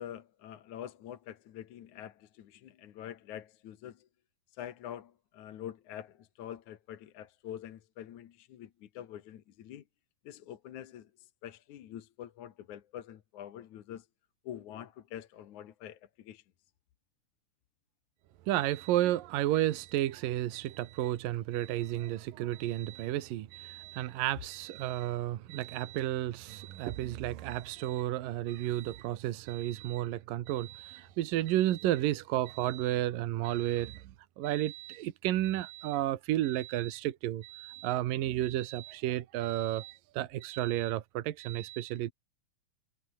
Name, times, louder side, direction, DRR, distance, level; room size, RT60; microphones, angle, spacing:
voice 1, 0.0-4.0 4.6-9.8 10.3-11.1 11.4-14.1 14.5-16.4, left 11 dB, 65° left, 2.6 m, -45 dB
voice 2, 18.5-42.1, right 14 dB, 80° right, 2.9 m, -32 dB
omnidirectional pair, 4.0 m